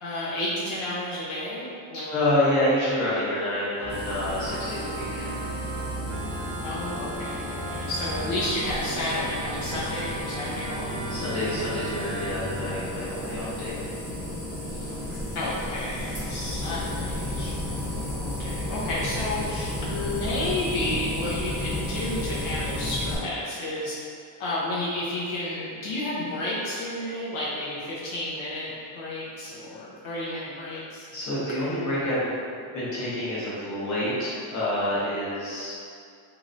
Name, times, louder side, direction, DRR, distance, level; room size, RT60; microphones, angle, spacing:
voice 1, 0.0-2.2 6.6-10.9 14.7-14.9 15.3-24.0 24.4-31.1, left 1 dB, 75° left, -7 dB, 0.8 m, -31 dB
voice 2, 2.1-5.4 11.1-13.7 31.1-35.7, left 1 dB, 35° left, -9 dB, 0.9 m, -28 dB
Organ, 3.8-12.9, right 2 dB, 55° right, 0.8 m, -35 dB
sound 1, 3.9-23.2, left 1 dB, 10° right, 0.8 m, -33 dB
3.1 x 2.9 x 2.5 m, 2.4 s
cardioid pair, 180°, 48 cm